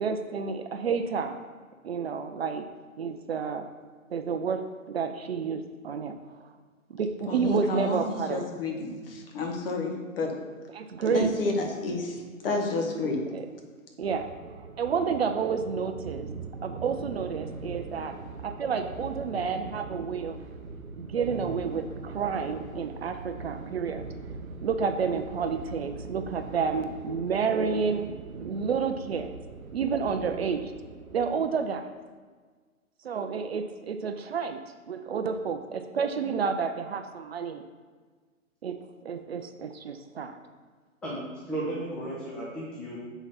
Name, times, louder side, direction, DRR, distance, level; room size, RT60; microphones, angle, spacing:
voice 1, 0.0-1.4 1.8-2.7 3.0-3.7 4.1-6.1 6.4-6.5 6.9-8.4 10.7-11.3 13.3-13.4 14.0-14.3 14.8-16.3 16.6-18.1 18.4-20.4 21.0-24.1 24.6-29.3 29.7-30.7 31.1-31.9 33.0-34.6 34.9-37.6 38.6-38.8 39.0-40.4, right 6 dB, 50° right, 7 dB, 0.5 m, -30 dB
voice 2, 7.3-10.3 11.1-13.2, left 3 dB, 45° left, 2 dB, 1.3 m, -30 dB
sound 1, 14.0-31.5, right 4 dB, 85° right, 0.7 m, -41 dB
voice 3, 41.0-43.0, right 1 dB, ahead, -7 dB, 0.6 m, -34 dB
7.0 x 4.0 x 4.0 m, 1.5 s
figure-of-eight pair, 125°, 41 cm